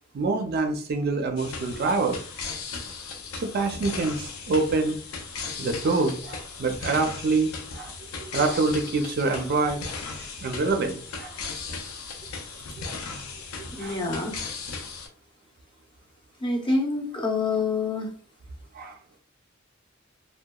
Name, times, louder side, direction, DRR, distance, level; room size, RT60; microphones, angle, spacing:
voice 1, 0.1-2.2 3.4-5.0 5.6-9.8 10.1-11.3 13.8-14.0 18.7-19.0, right 3 dB, 50° right, 5 dB, 0.4 m, -26 dB
sound 1, 1.4-15.1, left 4 dB, 85° left, 0.5 m, -37 dB
voice 2, 13.7-14.3 16.4-18.1, left 3 dB, 25° left, -1 dB, 0.6 m, -26 dB
2.8 x 2.1 x 2.2 m, 0.43 s
head